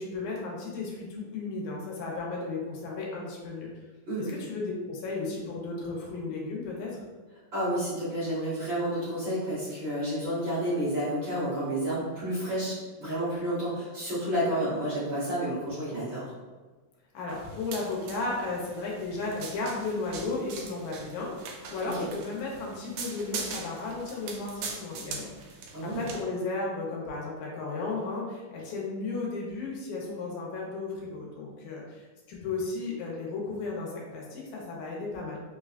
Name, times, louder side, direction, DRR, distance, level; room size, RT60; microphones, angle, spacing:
voice 1, 0.0-3.7 4.2-6.9 17.1-32.0 32.3-35.4, left 3 dB, 80° left, -3 dB, 2.2 m, -34 dB
voice 2, 7.5-16.3 21.8-22.1 25.7-26.0, right 1 dB, 50° right, -10 dB, 1.6 m, -30 dB
sound 1, 17.3-26.2, right 5 dB, 80° right, 1.7 m, -42 dB
5.4 x 2.2 x 2.4 m, 1.3 s
omnidirectional pair, 3.5 m